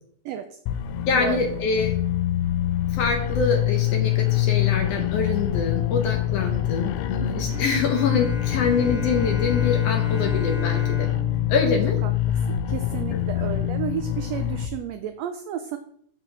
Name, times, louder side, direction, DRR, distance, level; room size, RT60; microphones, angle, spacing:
voice 1, 0.2-0.6 1.1-1.4 7.2-7.6 12.0-12.1 12.5-15.8, right 10 dB, 85° right, 8 dB, 1.5 m, -32 dB
sound 1, 0.7-14.7, left 13 dB, 85° left, 1.5 m, -25 dB
voice 2, 1.1-1.9 2.9-11.1 11.5-12.0 13.1-13.2, left 4 dB, 65° left, 3 dB, 1.7 m, -25 dB
Bowed string instrument, 7.5-13.0, right 1 dB, 5° right, 0.7 m, -37 dB
7.1 x 6.7 x 3.3 m, 0.64 s
omnidirectional pair, 3.5 m